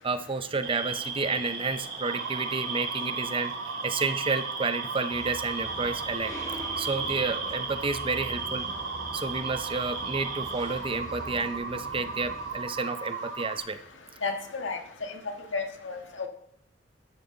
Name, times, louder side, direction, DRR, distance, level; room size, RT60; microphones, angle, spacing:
voice 1, 0.0-3.5 3.8-6.3 6.8-8.7 9.1-13.8, right 4 dB, 30° right, 10 dB, 0.7 m, -30 dB
sound 1, 0.6-10.8, right 4 dB, 50° right, 2.5 m, -36 dB
sound 2, 2.0-13.6, right 4 dB, 75° right, 1.8 m, -37 dB
sound 3, 5.1-12.6, equal, 20° left, 3.0 m, -44 dB
voice 2, 14.2-14.8 15.1-15.2 15.5-16.3, left 4 dB, 80° left, 4 dB, 1.7 m, -32 dB
13.0 x 11.0 x 3.9 m, 0.73 s
head